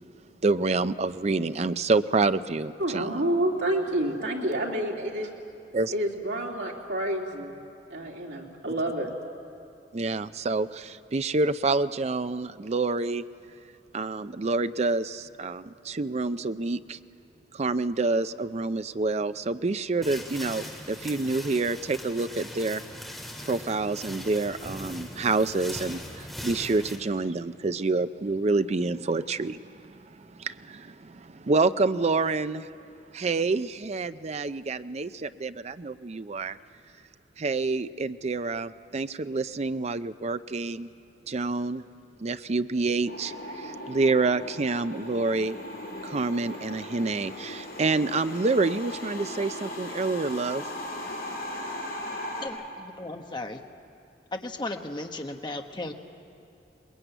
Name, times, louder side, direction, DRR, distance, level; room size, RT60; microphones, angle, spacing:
voice 1, 0.4-3.2 5.7-5.9 9.9-13.2 13.9-17.0 17.5-22.8 23.4-32.7 33.1-36.6 37.4-40.9 41.3-41.8 42.2-45.6 46.0-50.6, right 3 dB, 40° right, 12 dB, 0.5 m, -28 dB
voice 2, 2.8-5.3 5.9-7.5 7.9-9.1, right 1 dB, 85° right, -2 dB, 3.0 m, -28 dB
sound 1, 20.0-27.0, equal, ahead, 2.8 m, -40 dB
sound 2, 43.1-52.5, left 1 dB, 60° left, 5.9 m, -38 dB
voice 3, 52.4-53.6 54.3-55.9, left 2 dB, 25° left, 4 dB, 1.2 m, -35 dB
22.5 x 20.5 x 9.1 m, 2.6 s
head